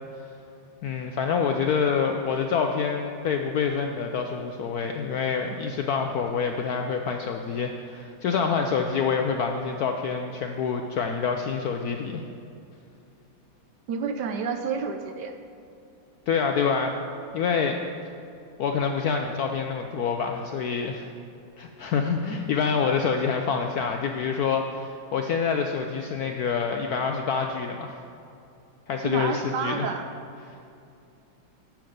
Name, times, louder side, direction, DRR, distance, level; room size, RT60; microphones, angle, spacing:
voice 1, 0.8-12.2 16.3-17.0 17.3-17.8 18.6-21.1 21.6-28.0 28.9-29.9, left 6 dB, 75° left, 4 dB, 0.9 m, -26 dB
voice 2, 13.9-15.3 29.0-30.1, right 5 dB, 70° right, 6 dB, 1.1 m, -29 dB
10.5 x 7.3 x 5.1 m, 2.6 s
omnidirectional pair, 2.1 m